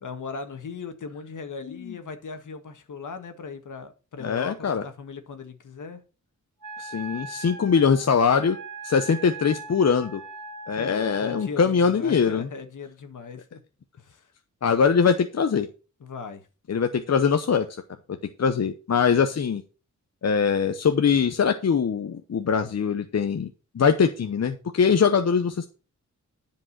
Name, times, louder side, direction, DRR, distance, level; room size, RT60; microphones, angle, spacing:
voice 1, 0.0-6.0 10.7-13.6 14.0-14.3 16.0-16.8, left 5 dB, 75° left, 1.7 m, -38 dB
voice 2, 4.2-4.8 6.8-8.6 8.8-10.2 10.7-12.5 14.6-15.7 16.7-17.7 18.4-19.6 20.2-25.7, left 6 dB, 55° left, 0.9 m, -22 dB
Wind instrument woodwind instrument, 6.6-11.5, right 3 dB, 85° right, 2.0 m, -40 dB
10.0 x 5.2 x 5.9 m
wide cardioid pair, 85°, 31 cm